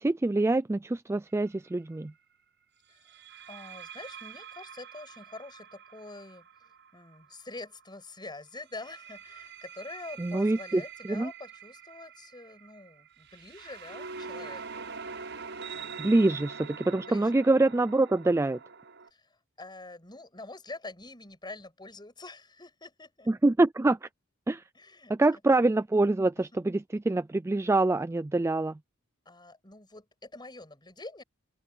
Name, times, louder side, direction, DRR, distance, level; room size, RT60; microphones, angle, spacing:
voice 1, 0.0-2.1 10.2-11.3 16.0-18.6 23.3-24.1 24.5-24.6 25.1-28.8, right 2 dB, 15° right, 0.3 m, -25 dB
sound 1, 1.3-1.6 3.1-7.8 8.6-19.1, right 5 dB, 60° right, 7.3 m, -44 dB
voice 2, 3.5-6.5 6.9-15.2 15.7-16.2 17.0-17.4 19.1-23.3 24.7-25.1 26.5-26.6 29.2-31.2, left 2 dB, 20° left, 7.8 m, -46 dB
open air
head